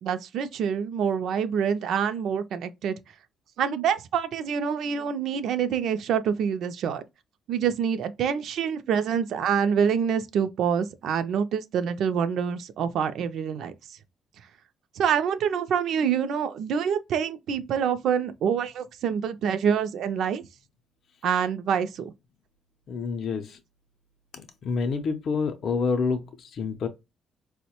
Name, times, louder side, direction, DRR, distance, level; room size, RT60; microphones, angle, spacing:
voice 1, 0.0-3.0 3.6-7.0 7.5-13.7 15.0-20.5 21.2-22.1, right 7 dB, 65° right, 0.4 m, -26 dB
voice 2, 22.9-23.6 24.3-26.9, left 5 dB, 50° left, 0.5 m, -28 dB
4.5 x 2.1 x 2.8 m
cardioid pair, 145°, 0 cm